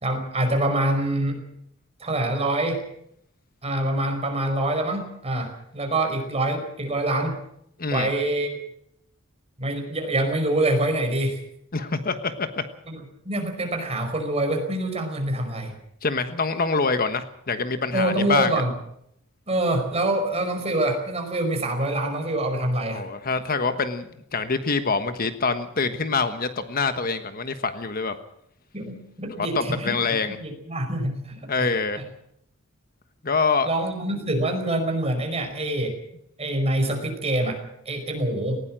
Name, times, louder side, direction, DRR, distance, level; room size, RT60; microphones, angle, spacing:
voice 1, 0.0-1.4 2.0-2.8 3.6-7.4 7.9-8.6 9.6-11.4 12.9-13.0 13.3-15.7 17.9-18.7 19.5-23.0 28.7-30.0 30.3-31.7 33.6-36.0 36.4-37.6 37.9-38.6, right 1 dB, 30° right, 4 dB, 5.0 m, -25 dB
voice 2, 11.7-12.6 16.0-18.6 22.9-28.2 29.4-30.4 31.5-32.0 33.2-33.7, left 4 dB, 45° left, 9 dB, 1.3 m, -25 dB
19.5 x 17.5 x 7.6 m, 0.74 s
head